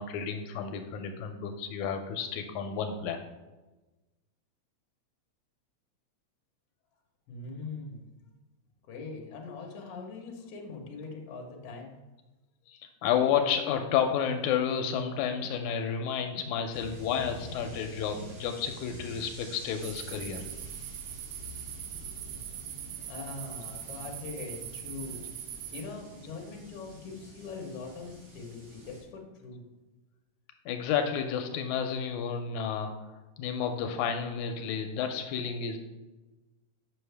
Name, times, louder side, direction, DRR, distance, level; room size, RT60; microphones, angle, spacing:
voice 1, 0.0-3.2 12.7-20.4 30.7-33.1 33.4-35.8, left 7 dB, 85° left, 6 dB, 2.0 m, -31 dB
voice 2, 7.3-8.1 8.9-12.0 23.1-25.3 25.7-29.6, left 4 dB, 60° left, 1 dB, 1.8 m, -42 dB
sound 1, 16.7-29.0, right 1 dB, 60° right, 3.0 m, -48 dB
sound 2, 19.8-25.8, right 11 dB, 90° right, 2.0 m, -42 dB
7.2 x 5.4 x 3.4 m, 1.1 s
omnidirectional pair, 3.4 m